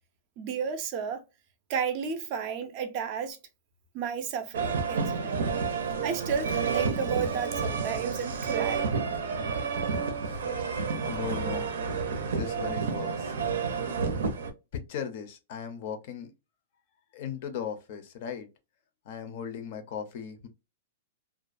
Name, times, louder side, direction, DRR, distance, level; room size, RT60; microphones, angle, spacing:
voice 1, 0.4-1.2 1.7-3.4 3.9-5.4 6.0-8.9, right 7 dB, 30° right, 0.4 m, -32 dB
sound 1, 4.5-14.5, right 5 dB, 85° right, 0.6 m, -30 dB
sound 2, 4.6-5.2 5.5-5.6 5.9-6.1 6.3-6.5 6.7-6.9 7.2-8.5 8.7-9.3 9.5-10.1 10.3-11.7, left 2 dB, 80° left, 0.7 m, -45 dB
voice 2, 10.3-10.6 11.1-11.7 12.2-13.3 14.7-16.3 17.1-18.5 19.1-20.5, left 7 dB, 40° left, 0.5 m, -37 dB
2.4 x 2.1 x 2.5 m
supercardioid pair, 175°, 0 cm